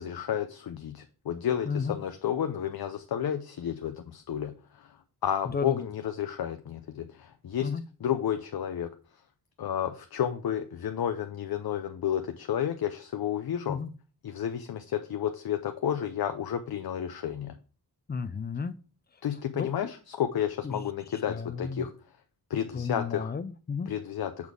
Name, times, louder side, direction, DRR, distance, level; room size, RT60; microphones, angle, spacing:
voice 1, 0.0-5.0 5.2-7.7 8.0-8.9 9.6-13.8 14.2-17.5 19.2-21.9 22.5-23.3 23.9-24.5, left 9 dB, 70° left, 8 dB, 0.6 m, -31 dB
voice 2, 1.7-2.0 5.5-5.8 7.6-7.8 13.7-13.9 18.1-18.7 19.5-19.7 20.6-20.9 21.3-21.9 22.7-23.9, left 5 dB, 25° left, 13 dB, 0.4 m, -32 dB
7.1 x 4.1 x 4.7 m, 0.37 s
wide cardioid pair, 165°, 38 cm